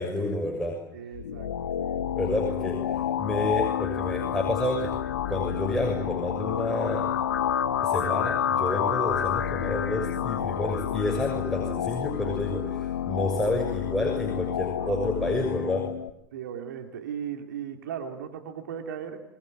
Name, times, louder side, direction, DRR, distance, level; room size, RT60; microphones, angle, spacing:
voice 1, 0.0-0.8 2.1-4.9 5.3-7.1 7.8-15.8, left 1 dB, 5° left, -1 dB, 6.6 m, -29 dB
voice 2, 0.9-2.1 13.5-13.6 14.8-15.2 16.3-19.2, right 8 dB, 70° right, 5 dB, 2.9 m, -37 dB
sound 1, 1.1-16.1, left 9 dB, 75° left, 1.1 m, -29 dB
26.5 x 21.5 x 9.5 m, 0.87 s
figure-of-eight pair, 80°, 10 cm